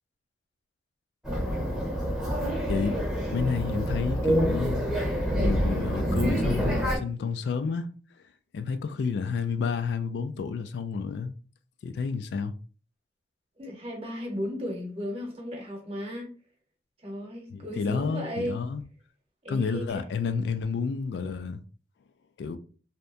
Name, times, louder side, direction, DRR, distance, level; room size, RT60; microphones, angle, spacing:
sound 1, 1.2-7.0, equal, 5° right, 0.7 m, -27 dB
voice 1, 3.3-4.9 5.4-7.9 8.5-11.3 11.8-12.5 17.5-18.8 19.5-21.6 22.4-22.6, left 5 dB, 75° left, 0.3 m, -30 dB
voice 2, 13.6-16.3 17.0-18.6 19.4-20.0, equal, 35° right, 0.9 m, -35 dB
2.8 x 2.2 x 2.4 m
head